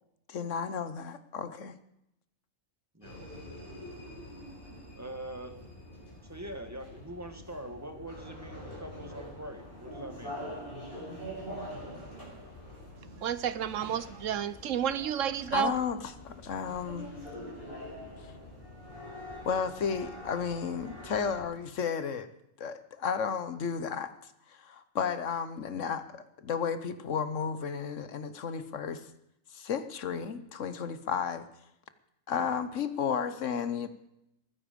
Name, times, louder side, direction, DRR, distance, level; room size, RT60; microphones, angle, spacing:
voice 1, 0.3-1.7 15.5-16.0 16.2-17.1 18.2-18.3 19.4-22.3 22.6-24.1 24.5-29.1 29.5-31.5 32.3-33.9, left 6 dB, 70° left, 1.3 m, -33 dB
sound 1, 3.0-21.4, equal, 45° left, 6.3 m, -45 dB
voice 2, 5.0-5.5 6.2-10.4, right 1 dB, 10° right, 1.5 m, -43 dB
voice 3, 13.2-15.7, right 9 dB, 75° right, 1.1 m, -31 dB
21.5 x 9.9 x 5.2 m
omnidirectional pair, 1.4 m